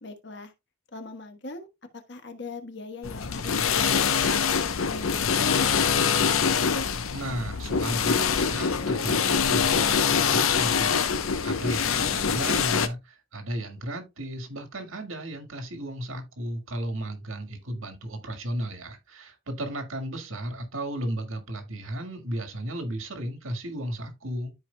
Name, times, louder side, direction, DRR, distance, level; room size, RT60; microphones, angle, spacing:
voice 1, 0.0-0.5 0.9-1.7 1.9-4.3 4.9-6.9 11.7-12.1, left 2 dB, 55° left, 1.2 m, -40 dB
sound 1, 3.0-12.9, left 6 dB, 80° left, 0.8 m, -24 dB
voice 2, 7.1-24.5, right 1 dB, 80° right, 1.8 m, -34 dB
13.0 x 4.6 x 2.2 m
head